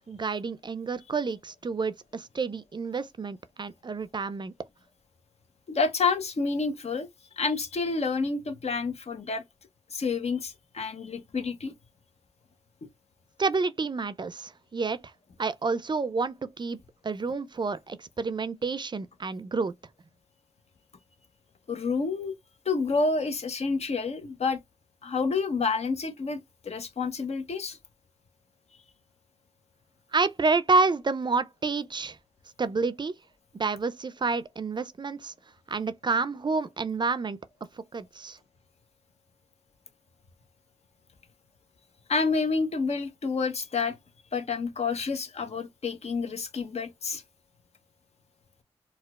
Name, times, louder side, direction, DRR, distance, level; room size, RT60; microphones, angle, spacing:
voice 1, 0.0-4.5 13.4-15.0 15.4-16.8 17.0-19.7 30.1-32.2 32.6-33.1 33.5-35.3 35.7-37.4 37.9-38.4, right 4 dB, 40° right, 0.4 m, -29 dB
voice 2, 5.7-7.1 7.4-9.4 9.9-11.7 21.7-22.3 22.7-24.6 25.0-27.8 42.1-44.0 44.3-47.2, left 4 dB, 65° left, 0.8 m, -29 dB
4.3 x 2.3 x 2.3 m
cardioid pair, 40°, 12 cm